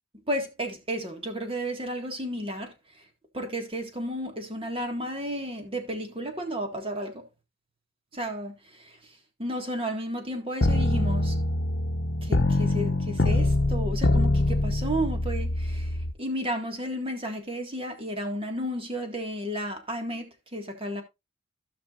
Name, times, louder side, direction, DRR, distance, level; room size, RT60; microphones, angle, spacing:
voice 1, 0.3-3.1 3.3-7.2 8.1-11.4 12.2-21.0, equal, 30° right, 1.9 m, -33 dB
sound 1, 10.6-16.1, left 1 dB, 60° left, 0.9 m, -24 dB
15.5 x 6.0 x 2.5 m
head